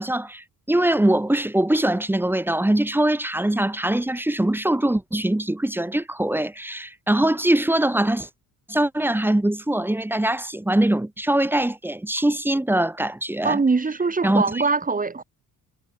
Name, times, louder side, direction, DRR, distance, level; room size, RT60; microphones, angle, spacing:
voice 1, 0.0-8.3 8.7-13.6 14.2-14.6, right 1 dB, 5° right, 1.3 m, -22 dB
voice 2, 13.4-15.2, right 4 dB, 25° right, 4.8 m, -22 dB
cardioid pair, 100°, 32 cm